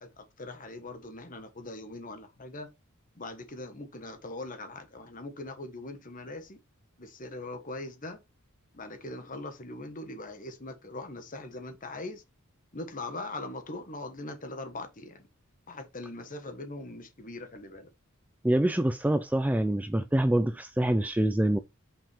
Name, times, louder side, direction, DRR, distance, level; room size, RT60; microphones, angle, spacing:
voice 1, 0.0-2.7 3.2-6.6 7.0-8.2 8.7-12.2 12.7-15.2 15.7-17.9, left 2 dB, 40° left, 1.3 m, -41 dB
voice 2, 18.4-21.6, right 1 dB, 5° right, 0.3 m, -25 dB
5.6 x 5.4 x 3.4 m
head